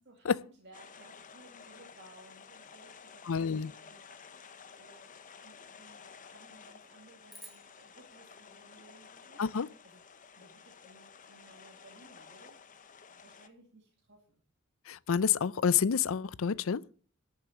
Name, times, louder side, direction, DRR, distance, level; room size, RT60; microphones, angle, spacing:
voice 1, 0.1-5.0 5.4-9.4 9.8-12.6 13.1-14.4, right 2 dB, 55° right, 2.4 m, -59 dB
sound 1, 0.7-13.5, left 6 dB, 40° left, 0.9 m, -53 dB
voice 2, 3.3-3.7 9.4-9.7 14.9-16.8, left 7 dB, 70° left, 0.5 m, -28 dB
sound 2, 7.3-9.7, right 1 dB, ahead, 2.4 m, -56 dB
12.5 x 6.8 x 7.3 m
head